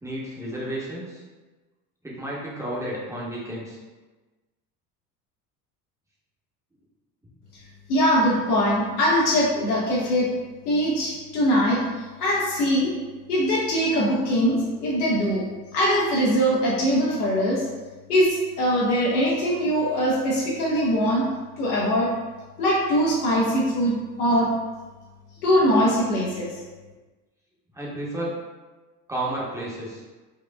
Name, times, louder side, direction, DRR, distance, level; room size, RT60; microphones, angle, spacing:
voice 1, 0.0-1.2 2.0-3.8 25.5-25.7 27.7-28.4 29.1-30.0, right 1 dB, 5° right, -6 dB, 0.9 m, -32 dB
voice 2, 7.9-10.3 10.7-12.9 13.3-15.4 15.7-17.7 18.1-21.2 21.6-22.1 22.6-24.5 25.4-26.5, equal, 65° left, -5 dB, 0.9 m, -22 dB
4.5 x 2.4 x 2.2 m, 1.3 s
figure-of-eight pair, 65°, 50 cm